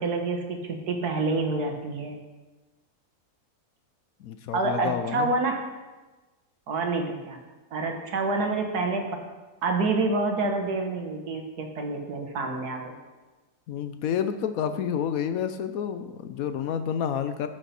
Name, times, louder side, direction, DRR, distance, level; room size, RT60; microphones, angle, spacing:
voice 1, 0.0-2.2 4.5-5.6 6.7-7.4 7.7-9.0 9.6-13.0, right 3 dB, 75° right, 3 dB, 1.7 m, -27 dB
voice 2, 4.2-5.3 13.7-17.5, left 8 dB, 70° left, 9 dB, 1.0 m, -29 dB
11.0 x 6.6 x 4.2 m, 1.2 s
omnidirectional pair, 1.7 m